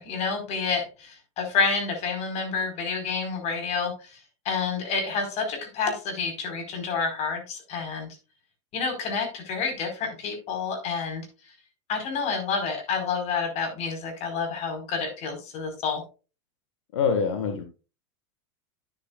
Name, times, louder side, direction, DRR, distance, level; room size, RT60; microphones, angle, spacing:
voice 1, 0.0-8.1 8.7-11.5 11.9-16.0, left 5 dB, 45° left, 5 dB, 4.7 m, -29 dB
voice 2, 16.9-17.6, left 6 dB, 80° left, 6 dB, 1.7 m, -24 dB
10.5 x 9.9 x 2.4 m, 0.32 s
supercardioid pair, 120°, 15 cm